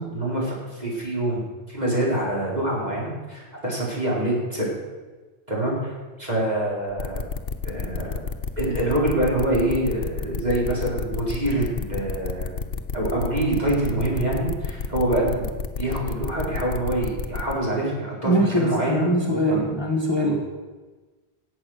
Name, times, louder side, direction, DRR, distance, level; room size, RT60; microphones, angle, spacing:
voice 1, 0.0-4.7 5.5-5.9 6.2-7.2 7.6-8.2 8.6-12.5 12.9-19.2 19.5-19.6 20.2-20.3, right 1 dB, 40° right, -5 dB, 4.7 m, -25 dB
sound 1, 7.0-17.5, left 5 dB, 55° left, 1.1 m, -30 dB
voice 2, 18.2-20.4, equal, 25° left, 0 dB, 1.6 m, -22 dB
18.0 x 8.0 x 6.6 m, 1.3 s
omnidirectional pair, 1.1 m